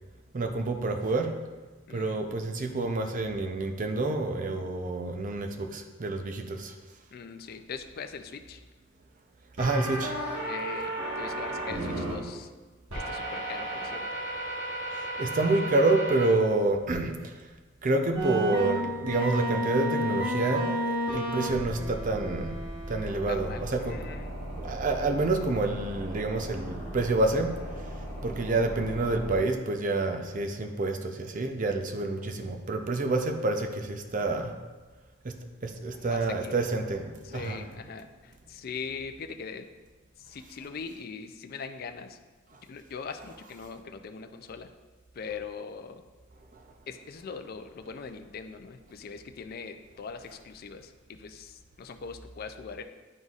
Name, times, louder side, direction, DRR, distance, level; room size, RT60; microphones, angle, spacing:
voice 1, 0.3-1.4 1.9-6.7 9.6-10.3 14.9-17.5 17.8-22.6 22.9-24.0 24.6-34.6 35.2-35.4 35.6-37.6 42.5-42.6 46.5-46.6, right 2 dB, 40° right, 4 dB, 0.5 m, -28 dB
voice 2, 7.1-8.6 10.4-12.5 12.9-14.1 23.3-24.3 35.9-36.9 37.2-39.7 40.2-42.2 42.6-44.7 45.1-46.0 46.9-52.8, left 5 dB, 50° left, 7 dB, 0.4 m, -41 dB
sound 1, 9.6-12.1 12.9-16.3 16.9-17.0 18.1-29.4, equal, 80° right, 1.6 m, -33 dB
10.5 x 4.0 x 2.4 m, 1.3 s
head